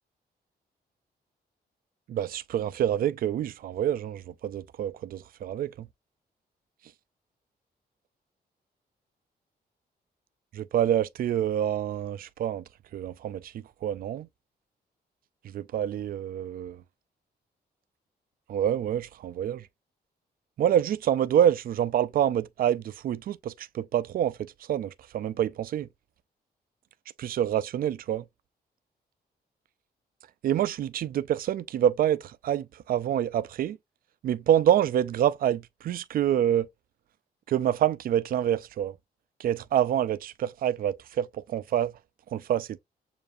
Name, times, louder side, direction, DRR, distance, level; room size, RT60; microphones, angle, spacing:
voice 1, 2.1-5.9 10.5-12.6 12.9-13.5 13.8-14.3 15.5-16.8 18.5-19.6 20.6-24.4 24.7-25.9 27.2-28.2 30.4-33.8 34.2-36.7 37.5-38.9 39.4-41.9 42.3-42.8, right 10 dB, 60° right, 0.4 m, -27 dB
6.8 x 2.7 x 2.5 m
wide cardioid pair, 145°, 17 cm